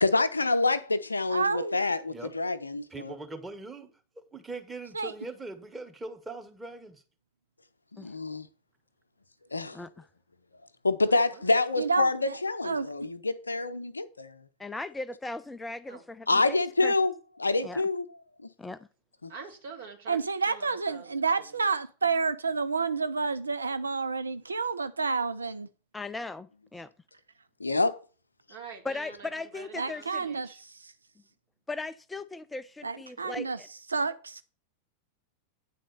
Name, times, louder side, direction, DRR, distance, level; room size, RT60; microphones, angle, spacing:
voice 1, 0.0-3.1 7.9-8.5 9.5-9.8 10.8-14.4 16.3-17.1 17.4-18.1 18.4-18.5 19.2-19.3 27.6-28.0, left 3 dB, 80° left, 0.6 m, -27 dB
voice 2, 1.3-1.8 4.9-5.1 11.8-12.4 12.6-12.9 20.1-25.7 29.8-30.9 32.8-33.6 33.9-34.4, right 4 dB, 75° right, 0.4 m, -29 dB
voice 3, 2.9-3.9 4.1-7.0, right 2 dB, 10° right, 1.4 m, -41 dB
voice 4, 9.7-10.1 14.6-16.3 16.8-16.9 17.6-17.8 18.6-18.8 25.9-26.9 28.8-30.2 31.7-33.7, left 2 dB, 10° left, 0.3 m, -38 dB
voice 5, 11.1-11.5 15.9-16.0 19.3-20.2 20.5-21.7 28.5-30.6, right 5 dB, 60° right, 2.3 m, -46 dB
9.3 x 4.2 x 6.7 m
figure-of-eight pair, 90°, 0 cm